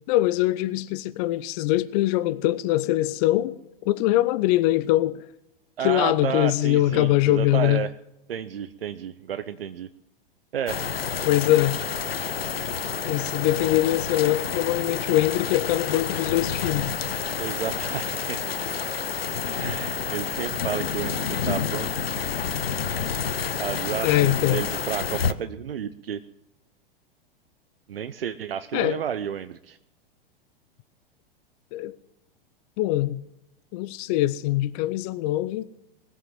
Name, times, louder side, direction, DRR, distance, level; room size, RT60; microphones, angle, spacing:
voice 1, 0.1-3.6 3.9-5.2 5.8-7.8 11.3-11.8 13.1-16.9 24.0-24.6 28.7-29.0 31.7-32.0 32.8-33.2 33.7-35.7, left 15 dB, 40° left, 0.6 m, -23 dB
voice 2, 5.8-7.9 8.3-9.9 10.5-10.9 17.4-18.4 19.6-21.9 23.6-26.2 27.9-29.8, right 9 dB, 75° right, 0.7 m, -31 dB
sound 1, 10.7-25.3, left 7 dB, 80° left, 0.8 m, -29 dB
20.0 x 8.0 x 7.6 m
figure-of-eight pair, 95°, 29 cm